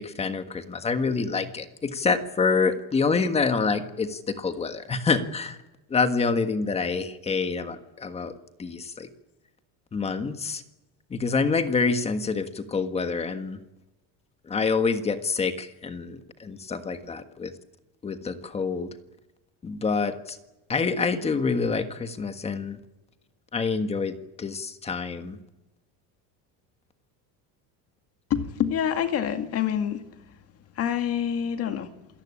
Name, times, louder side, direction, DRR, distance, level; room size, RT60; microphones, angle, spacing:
voice 1, 0.0-5.6 5.9-8.3 8.6-9.1 9.9-10.6 11.1-13.6 14.5-17.5 18.0-18.9 19.6-20.4 20.7-22.8 23.5-25.4, left 4 dB, 15° left, 9 dB, 1.5 m, -27 dB
voice 2, 28.3-30.1 30.7-31.9, left 9 dB, 40° left, 8 dB, 2.1 m, -26 dB
27.0 x 18.5 x 8.7 m, 0.99 s
cardioid pair, 180°, 38 cm